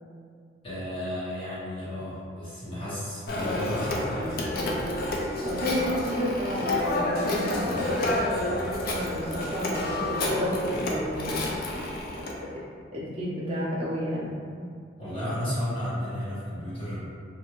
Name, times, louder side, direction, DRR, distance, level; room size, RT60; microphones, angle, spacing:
voice 1, 0.6-4.5 7.7-8.0 8.4-8.8 15.0-17.0, equal, 30° left, -11 dB, 0.8 m, -33 dB
Telephone, 3.3-12.3, left 1 dB, 50° left, 0.4 m, -29 dB
voice 2, 5.4-11.5 12.1-12.3 12.9-14.3, equal, 30° right, -6 dB, 0.5 m, -31 dB
2.5 x 2.2 x 2.9 m, 2.2 s
head